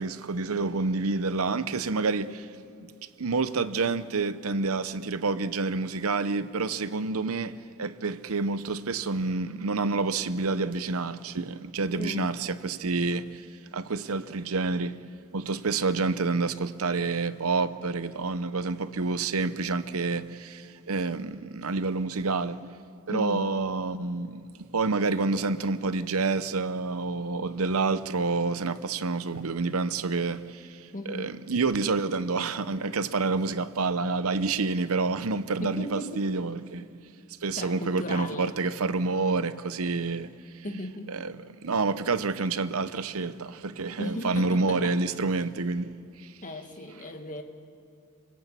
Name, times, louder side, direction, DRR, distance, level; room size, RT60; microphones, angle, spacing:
voice 1, 0.0-2.5 3.2-13.4 13.7-15.0 15.3-22.7 23.1-36.9 37.4-40.3 41.1-45.9, right 3 dB, 75° right, 0.8 m, -28 dB
voice 2, 12.0-12.3 23.1-23.5 30.9-31.3 35.6-36.3 37.6-38.5 40.6-41.2 44.0-45.0 46.4-47.4, left 1 dB, 35° left, 1.7 m, -36 dB
28.0 x 18.5 x 8.4 m
head